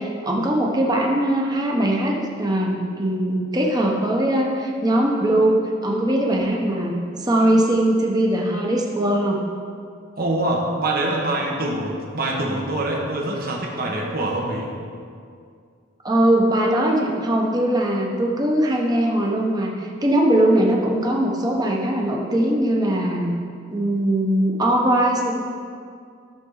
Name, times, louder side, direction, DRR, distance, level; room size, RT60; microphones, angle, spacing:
voice 1, 0.0-9.4 16.0-23.3 23.7-25.3, right 1 dB, 20° right, -1 dB, 1.1 m, -20 dB
voice 2, 10.2-14.7, right 1 dB, 50° right, -1 dB, 1.4 m, -24 dB
14.0 x 6.8 x 4.0 m, 2.3 s
head